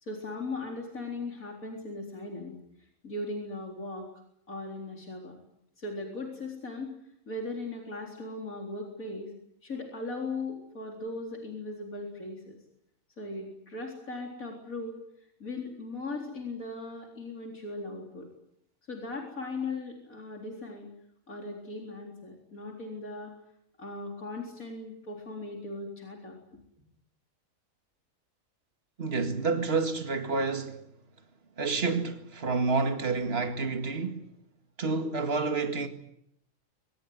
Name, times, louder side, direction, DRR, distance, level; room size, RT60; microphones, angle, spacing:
voice 1, 0.0-2.6 3.0-4.1 4.5-5.4 5.8-6.9 7.3-9.3 9.6-12.6 13.2-15.0 15.4-18.3 18.9-20.9 21.3-23.3 23.8-26.4, left 2 dB, 85° left, 4.5 m, -38 dB
voice 2, 29.0-30.8 31.6-34.3 34.8-35.9, right 4 dB, 45° right, 2.3 m, -29 dB
24.0 x 21.0 x 9.6 m
omnidirectional pair, 1.4 m